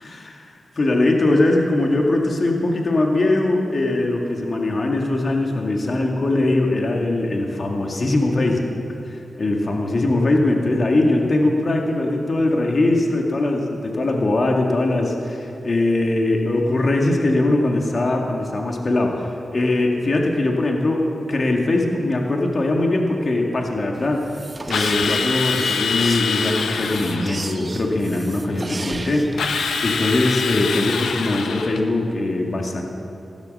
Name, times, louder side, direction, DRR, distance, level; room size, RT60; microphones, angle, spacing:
voice 1, 0.0-8.8 9.1-24.3 24.7-29.3 29.8-32.8, left 2 dB, 55° left, 1 dB, 2.0 m, -21 dB
sound 1, 23.9-30.3, right 2 dB, 40° right, 1.1 m, -35 dB
Drill, 24.7-27.4 29.4-31.9, left 5 dB, 90° left, 0.9 m, -24 dB
15.5 x 12.0 x 6.5 m, 2.9 s
cardioid pair, 50°, 0 cm